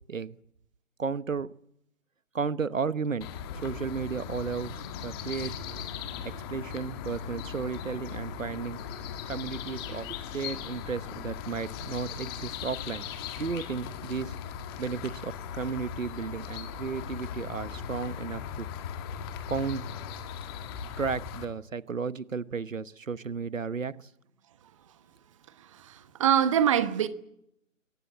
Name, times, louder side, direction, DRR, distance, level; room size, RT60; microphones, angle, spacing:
voice 1, 1.0-1.5 2.3-3.3 3.6-5.5 6.2-8.8 9.3-13.1 13.4-14.3 14.8-18.7 19.5-19.8 21.0-24.1, right 5 dB, 70° right, 1.2 m, -33 dB
sound 1, 3.2-21.5, left 7 dB, 20° left, 1.7 m, -38 dB
voice 2, 25.6-27.1, right 9 dB, 25° right, 1.2 m, -24 dB
22.5 x 18.0 x 8.7 m
figure-of-eight pair, 145°, 40 cm